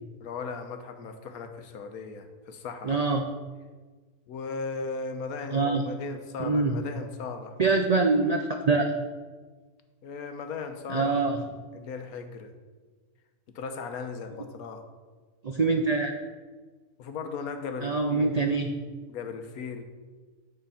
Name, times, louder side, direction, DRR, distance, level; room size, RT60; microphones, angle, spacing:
voice 1, 0.2-3.0 4.3-7.6 10.0-11.2 11.7-12.5 13.5-14.8 17.0-18.4 19.1-19.8, left 4 dB, 80° left, 6 dB, 1.3 m, -37 dB
voice 2, 2.8-3.2 5.5-5.8 6.4-6.8 7.6-8.9 10.9-11.4 15.4-16.1 17.8-18.8, right 3 dB, 70° right, 3 dB, 0.3 m, -24 dB
9.3 x 4.4 x 5.6 m, 1.4 s
omnidirectional pair, 1.5 m